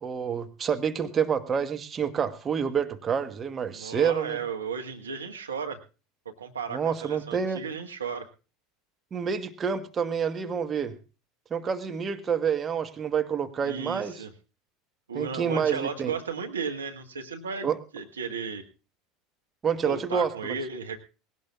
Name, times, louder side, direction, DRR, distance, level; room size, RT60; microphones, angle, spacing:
voice 1, 0.0-4.4 6.7-7.6 9.1-11.0 11.5-14.2 15.1-16.1 17.6-17.8 19.6-20.3, right 7 dB, 30° right, 8 dB, 1.2 m, -28 dB
voice 2, 3.7-5.8 6.4-8.3 13.6-14.3 15.1-18.6 19.8-21.1, right 5 dB, 80° right, 5 dB, 1.2 m, -34 dB
20.0 x 17.0 x 2.3 m, 0.32 s
figure-of-eight pair, 75°, 0 cm